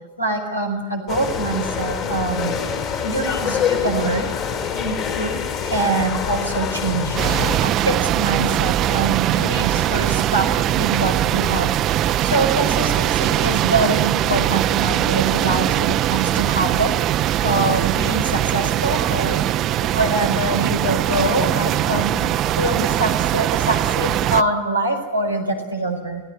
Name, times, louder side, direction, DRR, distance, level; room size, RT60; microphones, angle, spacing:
voice 1, 0.2-2.5 3.0-4.3 4.8-5.4 5.6-7.2 7.6-10.5 10.7-16.9 17.4-19.4 19.8-22.2 22.6-26.2, right 2 dB, 90° left, 4 dB, 5.2 m, -24 dB
sound 1, 1.1-7.6, left 7 dB, 40° left, 5.5 m, -25 dB
sound 2, 7.2-24.4, right 12 dB, 35° right, 0.8 m, -21 dB
29.0 x 17.0 x 10.0 m, 1.3 s
figure-of-eight pair, 90°, 0 cm